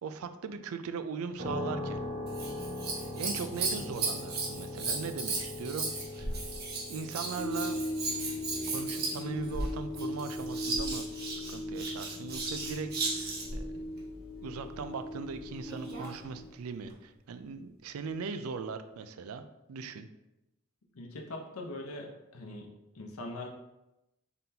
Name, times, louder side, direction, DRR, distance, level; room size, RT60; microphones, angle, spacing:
voice 1, 0.0-2.0 3.0-5.9 6.2-6.3 6.9-7.8 8.7-13.9 14.4-20.1, right 5 dB, 90° right, 10 dB, 0.4 m, -39 dB
sound 1, 1.4-16.0, left 1 dB, 70° right, 1.3 m, -43 dB
Scissors, 2.3-13.6 15.6-16.2 16.9-17.0, right 3 dB, 50° right, 1.0 m, -36 dB
sound 2, 7.4-16.5, left 1 dB, 50° left, 1.2 m, -39 dB
voice 2, 20.9-22.7 22.9-23.5, left 2 dB, 85° left, 2 dB, 0.7 m, -41 dB
4.0 x 3.8 x 2.8 m, 0.94 s
head